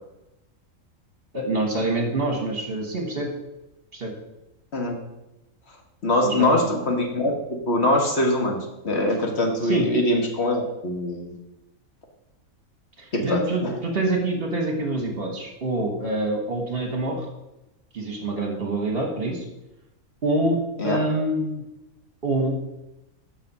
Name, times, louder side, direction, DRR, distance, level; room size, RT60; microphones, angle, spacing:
voice 1, 1.3-3.3 3.9-4.1 6.2-6.5 9.6-9.9 13.0-17.3 17.9-19.4 20.2-20.6 20.8-21.6 22.2-22.5, right 2 dB, 45° right, 1 dB, 1.4 m, -26 dB
voice 2, 6.0-8.6 8.8-11.3 13.1-13.7 20.8-21.0, left 1 dB, 50° left, 2 dB, 1.5 m, -23 dB
7.4 x 6.0 x 5.4 m, 0.94 s
omnidirectional pair, 1.5 m